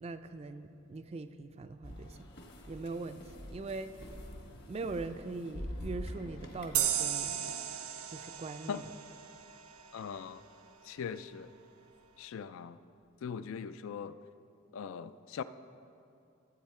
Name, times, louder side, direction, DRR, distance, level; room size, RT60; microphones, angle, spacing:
voice 1, 0.0-2.3 2.7-3.2 3.5-3.9 4.7-7.5 8.1-8.8, right 3 dB, 30° right, 10 dB, 0.3 m, -41 dB
sound 1, 1.8-7.5, equal, 50° left, 1.1 m, -46 dB
sound 2, 6.7-10.1, right 10 dB, 85° right, 0.6 m, -35 dB
voice 2, 9.9-10.4 10.8-11.5 12.2-12.8 13.2-14.2 14.7-15.4, left 6 dB, 70° left, 14 dB, 0.3 m, -40 dB
13.0 x 8.0 x 4.3 m, 2.6 s
head